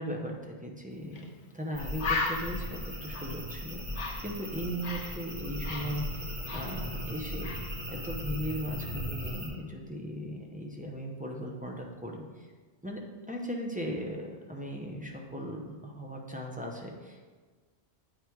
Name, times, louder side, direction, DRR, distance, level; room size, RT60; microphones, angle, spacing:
voice 1, 0.0-7.5 7.9-12.5 12.8-13.0 13.3-17.2, equal, 10° right, -1 dB, 0.6 m, -38 dB
Bird, 1.1-1.3 1.6-1.7 2.0-5.2 5.4-7.1 7.4-7.7, left 3 dB, 85° left, 1.1 m, -36 dB
sound 1, 1.7-9.5, equal, 40° right, 1.9 m, -38 dB
9.0 x 3.5 x 4.6 m, 1.4 s
omnidirectional pair, 1.1 m